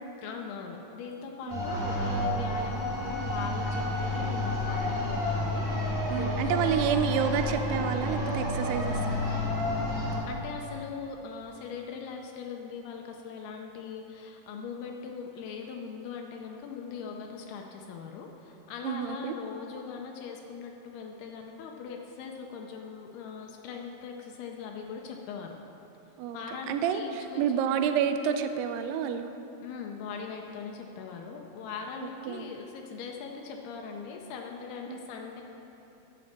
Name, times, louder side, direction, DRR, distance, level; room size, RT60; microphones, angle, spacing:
voice 1, 0.2-6.9 10.3-25.6 26.3-27.7 29.6-35.4, left 6 dB, 80° left, 1 dB, 2.7 m, -40 dB
sound 1, 1.5-10.2, left 1 dB, 35° right, 2.1 m, -30 dB
voice 2, 6.1-9.2 18.8-19.3 26.2-26.4 26.7-29.3 32.3-32.5 34.9-35.1, right 8 dB, 85° right, 8 dB, 2.6 m, -29 dB
9.5 x 7.1 x 7.2 m, 3.0 s
omnidirectional pair, 4.6 m